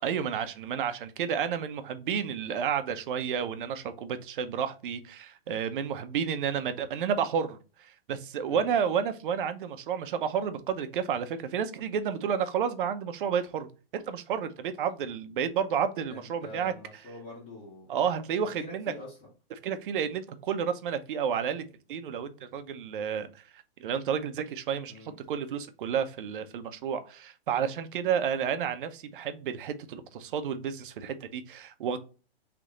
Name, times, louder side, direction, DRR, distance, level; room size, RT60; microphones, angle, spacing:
voice 1, 0.0-16.7 17.9-18.9 19.6-24.9 25.3-32.0, right 7 dB, 60° right, 0.7 m, -31 dB
voice 2, 16.1-17.9 18.6-19.3 24.9-25.2, left 3 dB, 25° left, 1.5 m, -45 dB
3.4 x 3.1 x 3.7 m
hypercardioid pair, 150°, 30 cm